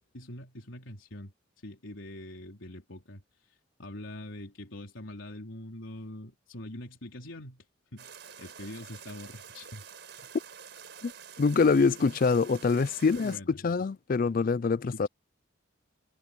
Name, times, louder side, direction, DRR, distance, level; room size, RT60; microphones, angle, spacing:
voice 1, 0.1-7.7 7.9-9.8 10.2-10.3 13.1-13.7 14.8-15.0, left 1 dB, 80° left, 3.6 m, -44 dB
sound 1, 8.0-13.4, right 7 dB, 60° right, 5.8 m, -48 dB
voice 2, 11.4-15.1, left 4 dB, 45° left, 0.4 m, -25 dB
head